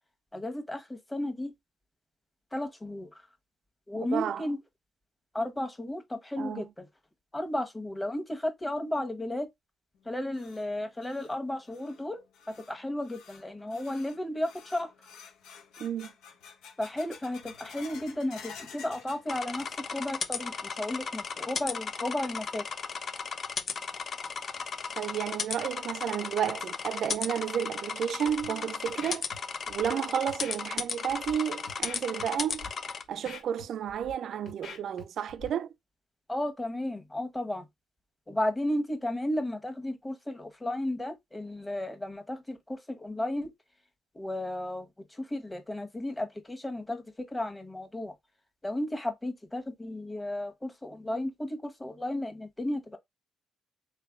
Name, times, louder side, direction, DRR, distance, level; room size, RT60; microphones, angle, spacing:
voice 1, 0.3-1.5 2.5-3.1 3.9-4.6 5.3-6.9 7.3-9.5 10.0-12.2 12.6-14.9 16.8-22.6 36.3-37.6 38.3-43.5 44.1-48.1 48.6-53.0, left 1 dB, 10° left, 1.3 m, -34 dB
voice 2, 4.0-4.4 6.4-6.7 15.8-16.1 25.0-29.2 29.7-32.7 33.1-35.7, right 9 dB, 65° right, 0.4 m, -32 dB
sound 1, 9.9-20.1 20.4-21.0 21.4-21.5 22.2-22.3 23.9-24.0 24.5-24.6 25.0-25.1 25.6-25.7 26.2-26.6, left 6 dB, 85° left, 0.9 m, -51 dB
sound 2, 19.3-33.0, left 5 dB, 50° left, 0.7 m, -36 dB
Scratching (performance technique), 28.3-28.5 28.9-29.4 29.7-29.9 30.3-30.6 31.1-31.3 31.7-32.2 32.5-32.7 33.0-34.1 34.5-35.0 35.3-35.5, left 5 dB, 70° left, 1.9 m, -44 dB
3.7 x 3.3 x 3.7 m
cardioid pair, 90°, 0 cm